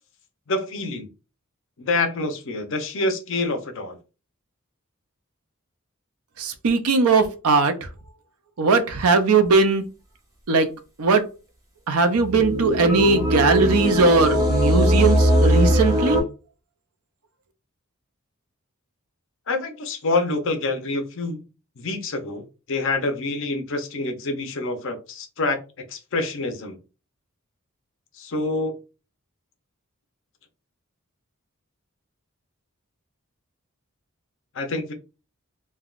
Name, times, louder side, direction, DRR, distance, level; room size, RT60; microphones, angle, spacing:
voice 1, 0.5-1.1 1.8-4.0 19.5-21.4 21.8-25.6 25.9-26.8 28.2-28.7 34.5-34.9, left 2 dB, 60° left, 0.6 m, -26 dB
voice 2, 6.4-7.9 8.6-9.8 10.5-10.7 11.0-11.3 11.9-16.2, right 4 dB, 85° right, 0.5 m, -19 dB
sound 1, 12.1-16.2, equal, 15° right, 0.8 m, -20 dB
3.3 x 2.2 x 2.4 m
head